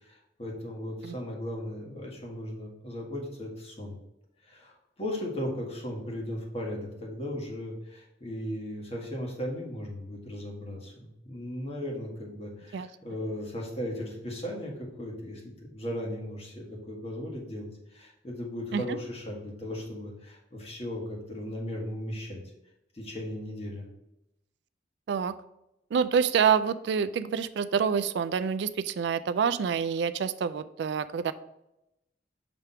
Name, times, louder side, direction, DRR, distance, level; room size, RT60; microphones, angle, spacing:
voice 1, 0.0-4.0 4.4-22.4 22.9-23.9, left 1 dB, 35° left, -1 dB, 1.6 m, -37 dB
voice 2, 25.9-31.3, right 7 dB, 65° right, 14 dB, 0.3 m, -27 dB
6.0 x 3.4 x 5.6 m, 0.88 s
head